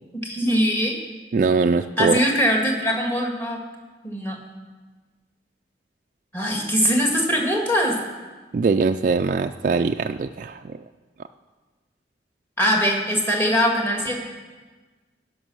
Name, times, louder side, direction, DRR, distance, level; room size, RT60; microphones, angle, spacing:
voice 1, 0.1-1.0 2.0-3.6 4.0-4.4 6.3-8.0 12.6-14.2, equal, 15° left, 0 dB, 1.8 m, -21 dB
voice 2, 1.3-2.2 8.5-10.8, right 4 dB, 45° right, 6 dB, 0.3 m, -22 dB
16.0 x 5.5 x 6.2 m, 1.3 s
head